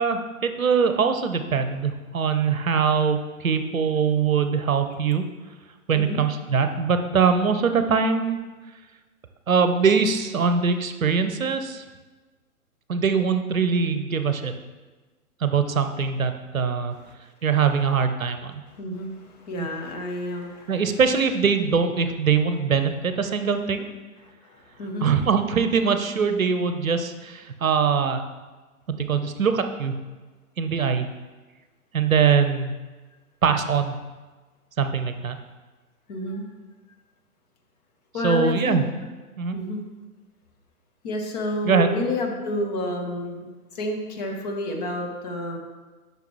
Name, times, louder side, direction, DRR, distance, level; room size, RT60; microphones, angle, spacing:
voice 1, 0.0-5.2 5.9-8.4 9.5-11.8 12.9-14.5 15.4-17.0 17.4-18.6 19.6-19.7 20.7-23.9 25.0-28.2 29.0-30.0 30.6-31.1 31.9-32.7 33.4-34.0 34.8-35.4 38.2-38.9 39.4-39.6 41.6-41.9, right 6 dB, 65° right, 8 dB, 0.8 m, -22 dB
voice 2, 5.9-6.2 18.7-20.8 24.4-25.1 36.1-36.5 38.1-38.8 39.5-39.8 41.0-43.5 43.7-45.6, left 1 dB, 30° left, 2 dB, 1.0 m, -30 dB
10.5 x 5.9 x 3.1 m, 1.3 s
figure-of-eight pair, 120°, 44 cm